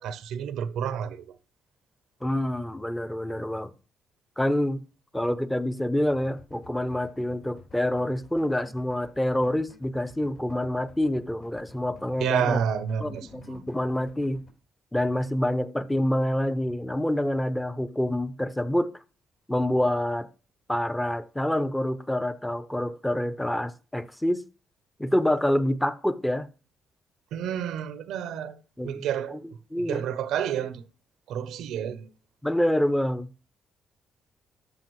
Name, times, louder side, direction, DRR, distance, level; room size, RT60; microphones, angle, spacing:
voice 1, 0.0-1.4 12.2-13.7 27.3-29.4 29.9-30.9 31.3-32.1, right 8 dB, 85° right, 0.6 m, -30 dB
voice 2, 2.2-3.7 4.4-4.8 5.1-12.6 13.0-14.4 14.9-19.0 19.5-20.3 20.7-24.4 25.0-26.5 28.8-29.1 29.7-30.1 32.4-33.5, left 1 dB, 5° left, 0.5 m, -27 dB
sound 1, 6.0-14.5, left 4 dB, 60° left, 3.8 m, -52 dB
13.5 x 5.0 x 3.0 m
cardioid pair, 90°, 0 cm